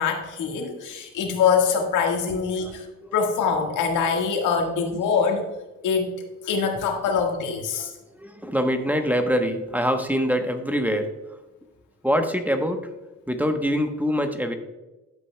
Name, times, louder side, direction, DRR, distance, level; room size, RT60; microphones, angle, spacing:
voice 1, 0.0-2.8 3.1-5.5 5.8-6.1 6.4-7.9, left 6 dB, 85° left, 2 dB, 1.7 m, -24 dB
voice 2, 7.8-11.1 12.0-12.9 13.3-14.5, equal, 5° right, 6 dB, 1.0 m, -24 dB
11.5 x 8.5 x 2.2 m, 1.0 s
cardioid pair, 90°, 30 cm